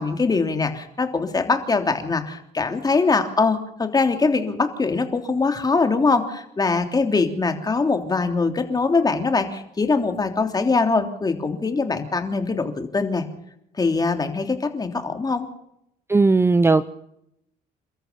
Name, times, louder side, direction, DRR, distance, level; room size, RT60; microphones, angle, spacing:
voice 1, 0.0-13.2 13.8-15.5, left 4 dB, 25° left, 6 dB, 3.3 m, -22 dB
voice 2, 16.1-16.9, right 3 dB, 15° right, 14 dB, 0.8 m, -17 dB
29.5 x 13.5 x 6.9 m, 0.77 s
cardioid pair, 110°, 17 cm